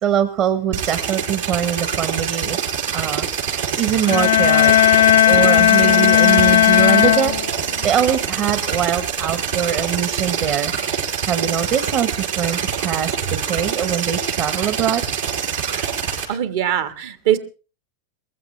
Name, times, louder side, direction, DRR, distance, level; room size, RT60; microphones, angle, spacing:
voice 1, 0.0-2.6 2.9-4.8 5.2-10.7 11.3-15.0 15.7-15.8, right 9 dB, 45° right, 10 dB, 1.1 m, -23 dB
sound 1, 0.7-16.2, right 7 dB, 90° right, 5.3 m, -25 dB
sound 2, 4.0-7.9, left 12 dB, 85° left, 0.9 m, -15 dB
voice 2, 15.6-15.9 16.3-17.4, right 11 dB, 70° right, 9 dB, 1.6 m, -22 dB
21.0 x 15.0 x 3.3 m, 0.35 s
hypercardioid pair, 115°, 0 cm